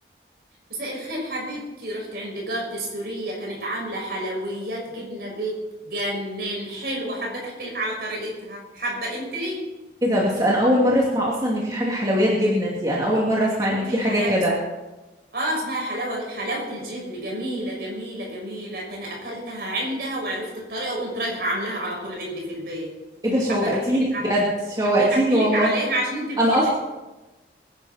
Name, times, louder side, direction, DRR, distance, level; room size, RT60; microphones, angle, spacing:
voice 1, 0.7-5.5 5.8-9.6 13.6-14.3 15.3-22.9 23.5-24.2 24.8-26.7, right 1 dB, 60° right, -2 dB, 6.2 m, -30 dB
voice 2, 10.0-14.5 23.2-25.7 26.4-26.7, equal, 20° right, -4 dB, 2.4 m, -21 dB
24.0 x 10.5 x 4.3 m, 1.1 s
head